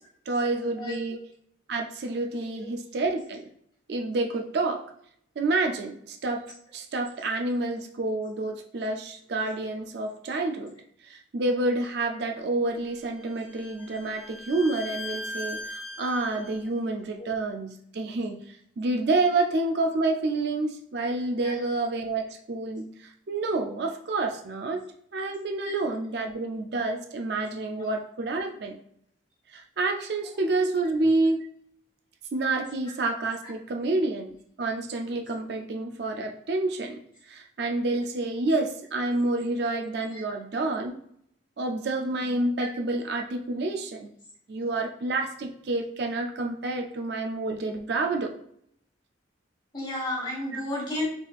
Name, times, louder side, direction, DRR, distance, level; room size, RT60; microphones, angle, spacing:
voice 1, 0.3-1.2 1.7-3.5 3.9-4.8 5.4-6.4 6.7-10.7 11.0-24.8 25.1-28.8 29.5-31.5 32.3-37.0 37.3-41.0 41.6-44.1 44.5-48.3 50.5-50.6, right 2 dB, 55° right, 3 dB, 0.4 m, -28 dB
Bowed string instrument, 12.8-16.6, left 1 dB, ahead, 0.5 m, -39 dB
voice 2, 49.7-51.0, left 1 dB, 25° left, -3 dB, 1.3 m, -32 dB
4.4 x 3.3 x 2.4 m, 0.67 s
head